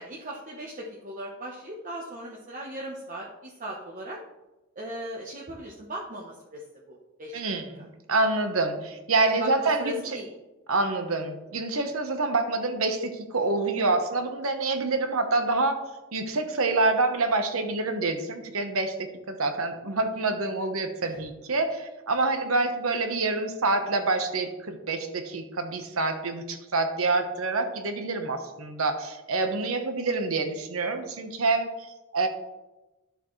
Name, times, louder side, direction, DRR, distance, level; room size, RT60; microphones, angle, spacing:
voice 1, 0.0-4.2 4.7-7.4 9.2-10.4 21.0-21.2, equal, 40° right, -3 dB, 1.0 m, -38 dB
voice 2, 7.3-10.0 10.7-15.8 16.1-31.7 32.1-32.3, right 3 dB, 75° right, 6 dB, 1.1 m, -27 dB
11.5 x 6.7 x 3.2 m, 1.0 s
head